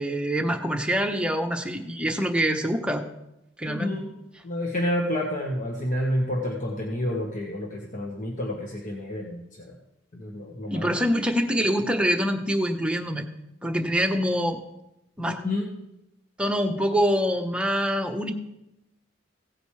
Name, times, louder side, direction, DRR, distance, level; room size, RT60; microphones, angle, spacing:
voice 1, 0.0-3.0 3.6-3.9 10.7-13.3 13.6-14.6 15.2-15.4 16.4-18.3, equal, 5° right, 4 dB, 1.0 m, -25 dB
voice 2, 3.7-4.1 4.4-9.7 10.1-10.9 15.3-15.7, left 1 dB, 40° left, -1 dB, 1.4 m, -29 dB
16.5 x 9.1 x 3.3 m, 0.85 s
head